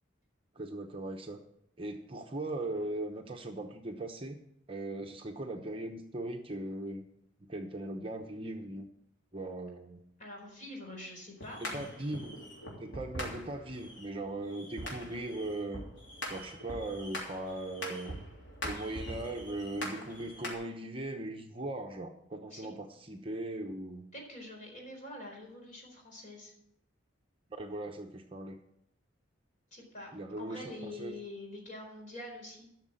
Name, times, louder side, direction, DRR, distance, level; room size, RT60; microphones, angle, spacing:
voice 1, 0.5-1.4 1.8-4.4 4.7-7.1 7.5-8.9 9.3-10.0 11.6-12.4 12.8-15.8 16.3-18.2 18.6-24.0 27.6-28.6 30.1-31.1, right 1 dB, 25° right, 3 dB, 0.8 m, -39 dB
voice 2, 10.2-11.6 22.5-22.7 24.1-26.5 29.7-30.1 30.4-32.7, left 1 dB, 40° left, 0 dB, 4.3 m, -45 dB
sound 1, 11.4-20.5, equal, 65° left, 3.3 m, -43 dB
12.5 x 6.5 x 7.6 m, 0.76 s
head